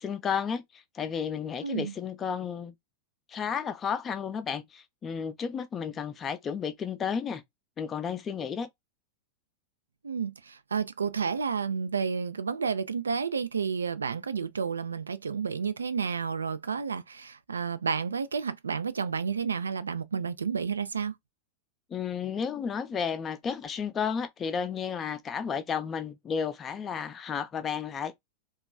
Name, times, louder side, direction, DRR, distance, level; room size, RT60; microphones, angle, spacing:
voice 1, 0.0-2.7 3.3-7.4 7.8-8.7 21.9-28.2, left 6 dB, 25° left, 0.5 m, -32 dB
voice 2, 1.6-1.9 10.0-21.1, right 6 dB, 75° right, 0.3 m, -31 dB
3.0 x 2.3 x 2.3 m
figure-of-eight pair, 90°, 0 cm